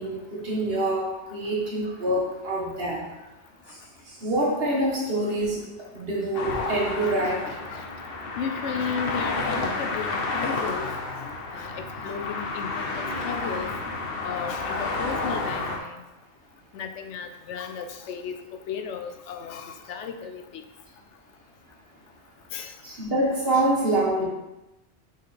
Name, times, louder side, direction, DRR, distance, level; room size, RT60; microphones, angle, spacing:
voice 1, 0.0-3.0 4.2-7.5 22.8-24.2, right 1 dB, 55° right, -4 dB, 1.7 m, -26 dB
sound 1, 6.3-15.8, left 3 dB, 55° left, 1.0 m, -30 dB
voice 2, 7.0-7.9 8.4-10.9 11.5-13.7 14.2-16.0 16.7-18.4 18.7-20.6 22.5-22.7 23.5-23.7, left 7 dB, 85° left, 7 dB, 0.9 m, -35 dB
6.4 x 4.0 x 4.1 m, 1.0 s
omnidirectional pair, 1.2 m